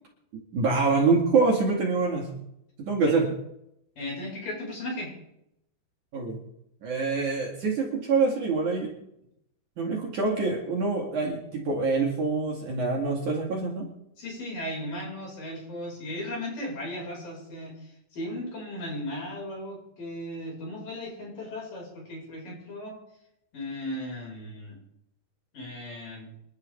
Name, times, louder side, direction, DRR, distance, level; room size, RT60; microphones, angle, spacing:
voice 1, 0.3-2.3 2.8-3.3 6.1-6.4 6.8-8.9 9.8-13.9, right 4 dB, 50° right, -2 dB, 3.3 m, -25 dB
voice 2, 4.0-5.1 14.2-23.0 23.5-24.8 25.5-26.3, left 1 dB, 50° left, -2 dB, 6.9 m, -36 dB
28.0 x 11.5 x 3.5 m, 0.80 s
omnidirectional pair, 5.0 m